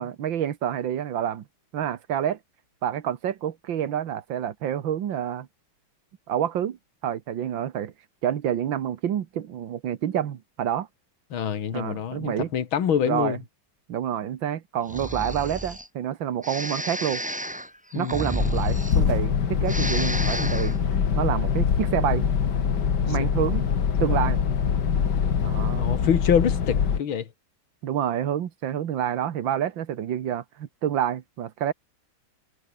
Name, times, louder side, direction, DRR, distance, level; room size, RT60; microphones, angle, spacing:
voice 1, 0.0-1.4 1.7-2.4 2.8-5.5 6.3-6.8 7.0-7.9 8.2-10.9 11.7-12.5 13.1-13.4 13.9-17.2 18.0-20.8 21.2-22.3 23.0-23.6 24.0-24.4 25.4-26.1 27.8-31.7, right 10 dB, 70° right, 2.0 m, -28 dB
voice 2, 11.3-13.4 17.9-18.2 25.8-27.2, left 8 dB, 85° left, 2.5 m, -25 dB
Breathing, 14.8-15.9 16.4-19.3 19.6-20.8, equal, 5° right, 3.1 m, -32 dB
sound 1, 18.4-27.0, left 7 dB, 60° left, 2.3 m, -24 dB
omnidirectional pair, 2.2 m